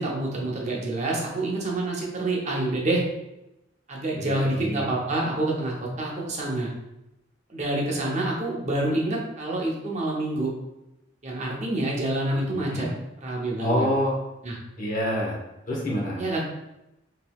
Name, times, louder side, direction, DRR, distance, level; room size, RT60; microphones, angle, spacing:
voice 1, 0.0-3.0 3.9-6.7 7.5-10.5 11.2-12.9 13.2-13.9 14.4-14.6 16.2-16.4, right 2 dB, 35° right, -2 dB, 0.6 m, -27 dB
voice 2, 4.2-4.9 12.5-12.9 13.6-14.1 14.8-15.4 15.7-16.2, equal, 40° left, -2 dB, 0.8 m, -27 dB
3.7 x 2.9 x 2.3 m, 0.91 s
head